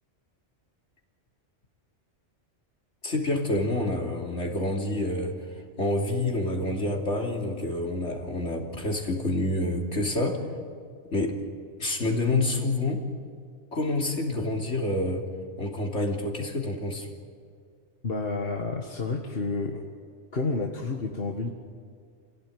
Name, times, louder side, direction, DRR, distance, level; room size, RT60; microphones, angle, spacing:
voice 1, 3.0-10.4 11.1-11.4 11.8-13.0 13.7-15.3 15.6-17.1, left 2 dB, 70° left, 1 dB, 3.5 m, -28 dB
voice 2, 18.0-19.8 20.3-21.5, left 3 dB, 55° left, 1 dB, 1.8 m, -30 dB
26.5 x 17.0 x 9.4 m, 2.2 s
omnidirectional pair, 1.2 m